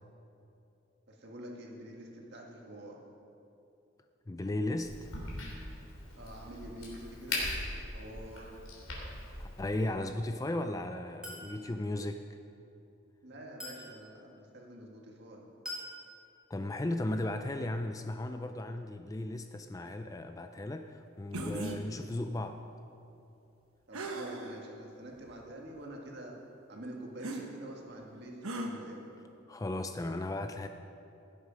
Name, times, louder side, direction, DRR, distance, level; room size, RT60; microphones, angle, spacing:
voice 1, 1.1-3.0 6.1-7.5 7.9-8.5 13.2-15.5 23.9-26.3 26.7-29.0, right 1 dB, 50° right, 0 dB, 1.7 m, -46 dB
voice 2, 4.3-5.1 9.4-12.4 16.5-22.6 29.5-30.7, left 1 dB, 15° left, 7 dB, 0.3 m, -36 dB
Crack, 4.8-9.9, left 2 dB, 75° left, 3.3 m, -40 dB
Chink clink, 11.2-11.6 13.6-13.9 15.7-16.0, left 1 dB, 5° right, 2.5 m, -42 dB
sound 1, 21.3-21.8 23.9-24.6 25.3-25.4 27.2-27.4 28.4-28.7, right 2 dB, 85° right, 1.2 m, -37 dB
16.5 x 8.1 x 5.2 m, 2.8 s
head